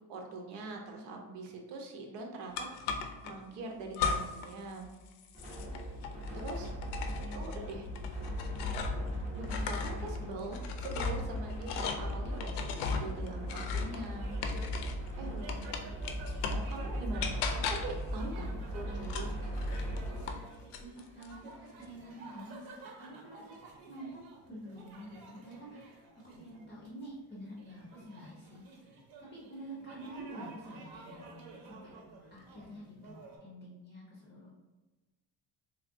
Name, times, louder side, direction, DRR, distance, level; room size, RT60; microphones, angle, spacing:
voice 1, 0.1-4.9 6.3-6.7 7.3-7.9 9.3-14.5 15.2-16.2 16.5-19.3, right 3 dB, 90° right, 2 dB, 0.8 m, -43 dB
sound 1, 2.5-3.3 3.9-4.5 4.8-9.1 9.4-15.1 15.5-16.7 17.2-18.0 19.0-20.4 20.7-21.3, left 5 dB, 75° left, 0.5 m, -37 dB
sound 2, 5.3-20.3, equal, 20° right, 0.6 m, -38 dB
voice 2, 7.1-7.6 15.4-15.9 20.3-21.5 21.8-23.6 23.9-31.9 32.3-34.5, right 1 dB, 25° left, -5 dB, 0.5 m, -48 dB
sound 3, 14.2-33.4, right 3 dB, 60° right, 0.8 m, -52 dB
3.5 x 3.2 x 2.5 m, 1.2 s
cardioid pair, 175°, 41 cm